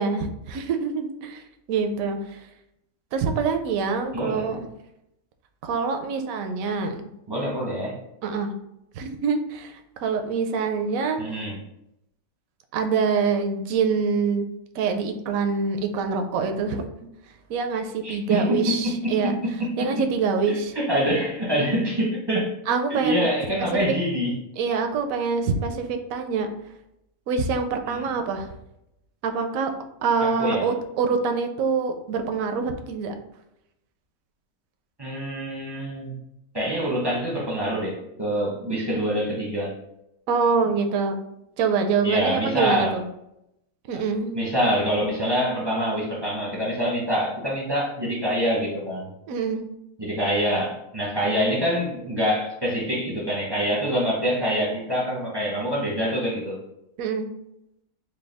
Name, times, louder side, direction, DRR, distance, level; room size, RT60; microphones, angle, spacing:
voice 1, 0.0-1.4 1.7-2.4 3.1-4.7 5.6-7.0 8.2-8.5 9.0-11.2 12.7-14.5 14.7-16.9 17.5-19.4 19.8-20.7 22.7-23.3 24.6-26.5 27.3-28.5 29.2-29.7 30.0-33.1 40.3-41.2 41.6-43.0 43.9-44.4 49.3-49.6 57.0-57.3, right 5 dB, 70° right, 6 dB, 0.9 m, -25 dB
voice 2, 4.1-4.5 7.3-8.0 11.2-11.6 18.0-18.9 19.6-19.7 20.5-22.5 22.9-24.3 27.9-28.1 30.2-30.7 35.0-36.1 36.5-39.7 42.0-42.9 43.9-44.0 44.3-49.1 50.0-56.6, equal, 25° right, -4 dB, 0.6 m, -25 dB
4.7 x 2.2 x 3.3 m, 0.83 s
omnidirectional pair, 1.6 m